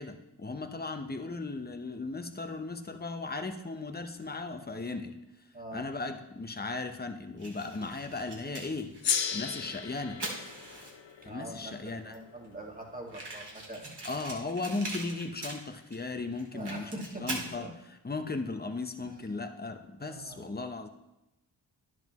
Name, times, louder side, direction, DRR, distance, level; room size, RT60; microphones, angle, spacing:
voice 1, 0.0-5.2 5.7-9.0 9.3-10.2 11.2-12.1 14.0-16.9 17.2-17.7 18.0-20.9, left 3 dB, 20° left, 7 dB, 0.9 m, -36 dB
voice 2, 5.5-5.9 11.2-14.1 16.5-17.7 19.0-19.1 20.1-20.5, right 1 dB, 20° right, 0 dB, 1.9 m, -44 dB
Fire, 7.4-11.2 11.9-12.0 12.1-12.2 12.4-12.5 13.1-16.0 16.3-17.5, right 2 dB, 60° right, 2.4 m, -41 dB
Gong, 9.0-13.8, left 7 dB, 75° left, 0.8 m, -36 dB
10.5 x 7.6 x 3.1 m, 0.93 s
cardioid pair, 40°, 45 cm